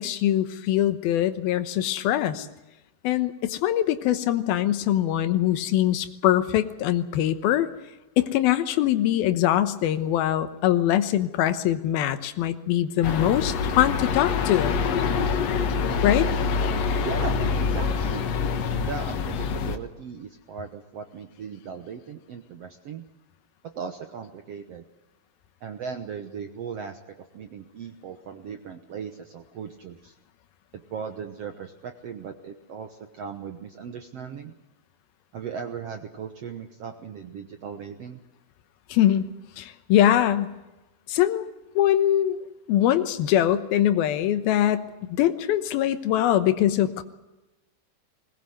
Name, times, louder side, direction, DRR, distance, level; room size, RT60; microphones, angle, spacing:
voice 1, 0.0-2.5 3.0-7.7 8.2-14.8 16.0-16.3 38.9-39.3 39.6-40.5 41.1-41.5 41.8-42.4 42.7-47.0, left 12 dB, 85° left, 11 dB, 2.9 m, -23 dB
sound 1, 13.0-19.8, left 5 dB, 60° left, 1.9 m, -25 dB
voice 2, 17.0-18.3 18.7-23.0 23.7-24.8 25.6-27.0 27.3-30.1 30.7-34.5 35.3-38.2, right 6 dB, 65° right, 7 dB, 1.5 m, -37 dB
21.0 x 19.5 x 7.9 m, 1.0 s
omnidirectional pair, 4.3 m